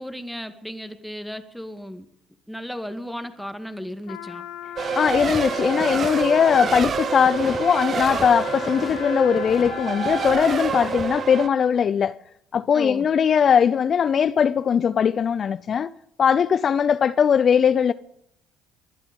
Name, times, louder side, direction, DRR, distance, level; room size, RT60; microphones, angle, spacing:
voice 1, 0.0-2.1 2.5-4.4 12.7-13.1, equal, ahead, 2.3 m, -34 dB
Trumpet, 4.0-11.0, left 9 dB, 75° left, 1.7 m, -38 dB
Race car auto racing, 4.8-11.5, right 6 dB, 45° right, 0.9 m, -27 dB
voice 2, 5.0-12.2 12.5-15.9 16.2-17.9, left 7 dB, 50° left, 0.6 m, -20 dB
sound 1, 5.0-5.4 5.7-6.9 7.2-8.3 8.5-9.7 10.0-11.1, left 3 dB, 20° left, 2.3 m, -37 dB
23.0 x 11.5 x 5.4 m
hypercardioid pair, 60°, 0 cm